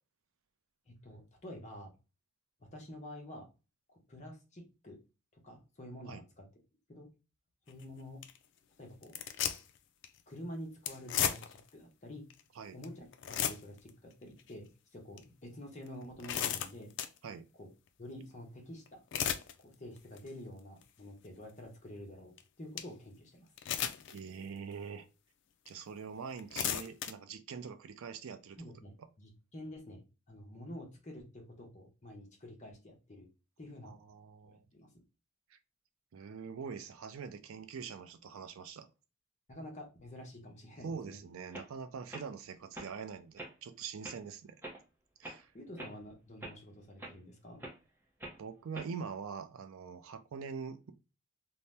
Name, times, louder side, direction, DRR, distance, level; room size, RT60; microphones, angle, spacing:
voice 1, 0.9-1.9 2.6-3.5 3.9-5.0 5.3-6.5 6.9-7.1 7.7-8.2 8.8-9.2 10.3-12.3 12.7-16.9 17.5-17.7 18.0-19.0 19.6-23.5 28.6-33.3 33.6-34.0 34.4-35.0 39.5-41.2 45.5-47.6, left 1 dB, 30° left, 0.8 m, -48 dB
sound 1, 7.7-7.8 8.2-8.4 9.0-9.8 10.0-10.2 10.9-11.7 12.3-12.4 12.8-12.9 13.1-13.9 14.4-14.5 15.2-15.3 15.9-17.2 18.9-19.5 20.0-20.3 20.8-20.9 22.4-22.5 22.8-22.9 23.6-24.2 24.7-24.8 25.7-25.8 26.3-27.1, left 9 dB, 55° left, 0.3 m, -34 dB
voice 2, 24.1-25.1 25.7-28.6 33.8-34.6 35.5-35.6 36.1-38.9 40.8-44.6 45.2-45.5 48.4-50.9, right 6 dB, 70° right, 0.4 m, -44 dB
sound 2, 41.0-41.1 41.5-41.7 42.1-42.3 42.7-42.9 43.4-43.5 44.0-44.2 44.6-44.8 45.2-45.4 45.8-46.0 46.4-46.6 47.0-47.2 47.6-47.8 48.2-48.4 48.7-49.0, right 1 dB, 10° right, 0.7 m, -45 dB
2.7 x 2.1 x 3.2 m
head